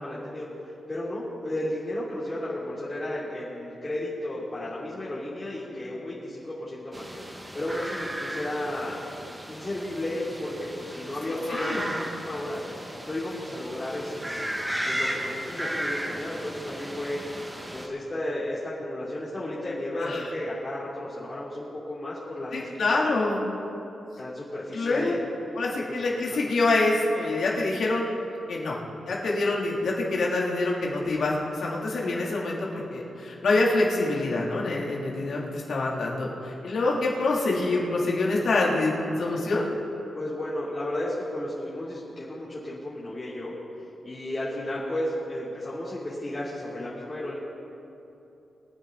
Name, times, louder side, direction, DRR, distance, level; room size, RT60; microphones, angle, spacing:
voice 1, 0.0-9.0 9.5-12.0 12.2-12.6 13.0-17.2 17.7-22.9 24.2-25.2 25.8-26.0 26.3-26.5 40.1-47.4, left 1 dB, 25° left, -9 dB, 3.1 m, -33 dB
sound 1, 6.9-17.9, equal, 15° right, 1.6 m, -35 dB
voice 2, 11.3-11.9 20.0-20.2 22.5-23.5 24.7-25.2 25.5-28.1 28.5-28.8 29.0-39.7, left 2 dB, 70° left, -3 dB, 2.8 m, -26 dB
23.0 x 9.8 x 4.0 m, 2.9 s
cardioid pair, 95°, 0 cm